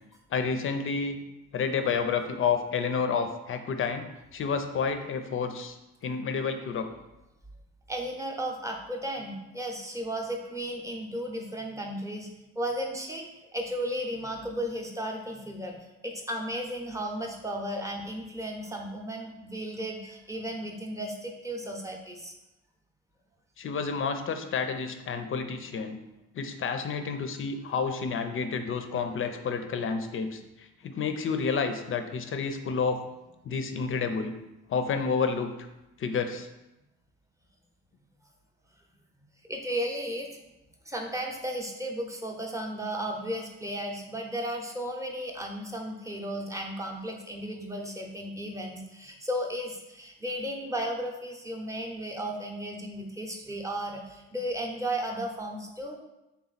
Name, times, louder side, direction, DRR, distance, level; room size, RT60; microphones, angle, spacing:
voice 1, 0.3-1.2 1.5-4.0 4.3-5.8 6.0-6.9 23.6-26.0 26.3-33.0 33.4-34.3 34.7-35.5 36.0-36.5, left 5 dB, 45° left, 8 dB, 0.5 m, -30 dB
voice 2, 7.9-13.2 13.5-15.8 16.0-22.3 39.5-40.3 40.9-56.0, equal, 10° right, 1 dB, 0.7 m, -34 dB
3.6 x 2.9 x 4.0 m, 0.95 s
cardioid pair, 90°, 30 cm